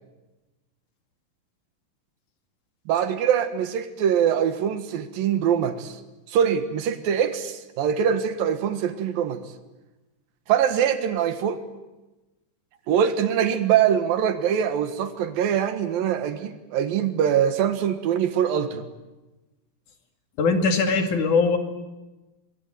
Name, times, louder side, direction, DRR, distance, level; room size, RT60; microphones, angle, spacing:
voice 1, 2.9-6.0 6.3-9.4 10.5-11.6 12.9-18.9, right 8 dB, 85° right, 10 dB, 3.3 m, -23 dB
voice 2, 20.4-21.6, left 4 dB, 65° left, 5 dB, 3.7 m, -21 dB
24.5 x 23.5 x 9.1 m, 1.1 s
omnidirectional pair, 4.0 m